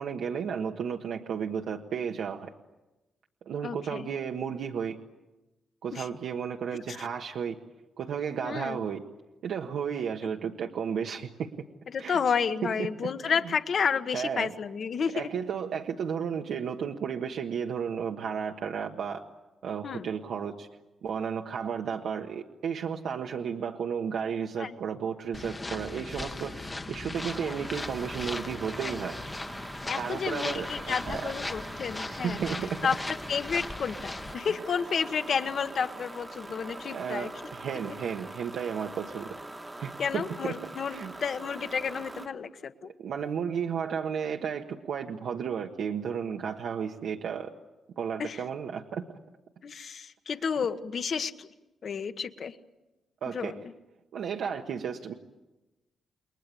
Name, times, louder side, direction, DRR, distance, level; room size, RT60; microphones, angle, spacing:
voice 1, 0.0-2.5 3.4-5.0 5.8-7.6 8.0-9.0 9.4-11.5 12.0-12.2 12.6-13.5 14.1-14.5 15.1-19.2 19.6-20.7 21.0-29.2 29.9-31.3 32.1-32.9 36.9-39.3 39.8-40.5 40.9-41.1 43.0-47.5 48.0-49.2 53.2-53.5 54.1-55.1, right 7 dB, 70° right, 2 dB, 1.4 m, -33 dB
voice 2, 3.6-4.1 5.9-6.1 6.9-7.0 8.4-8.8 11.9-15.3 19.8-20.1 24.6-24.8 27.4-27.6 29.9-32.4 32.8-33.0 33.3-37.3 40.0-42.9 48.2-48.4 49.6-51.5 51.8-52.6 53.3-53.6, left 6 dB, 45° left, 10 dB, 1.3 m, -31 dB
sound 1, 25.3-34.3, left 2 dB, 15° left, 1.1 m, -38 dB
sound 2, 27.1-42.3, right 2 dB, 15° right, 1.4 m, -43 dB
29.5 x 22.0 x 8.5 m, 1.1 s
wide cardioid pair, 175°, 0 cm